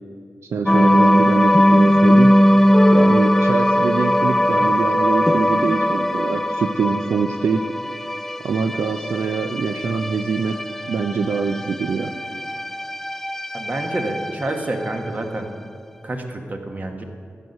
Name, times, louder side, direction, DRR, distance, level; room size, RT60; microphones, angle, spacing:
voice 1, 0.4-2.4 2.9-7.6 8.4-10.6 10.8-12.2, right 5 dB, 70° right, 6 dB, 0.5 m, -24 dB
sound 1, 0.7-15.1, equal, 5° left, 0.3 m, -19 dB
voice 2, 13.5-15.5 16.0-17.0, right 1 dB, 35° right, 3 dB, 1.3 m, -28 dB
12.5 x 8.0 x 5.4 m, 2.2 s
cardioid pair, 70°, 5 cm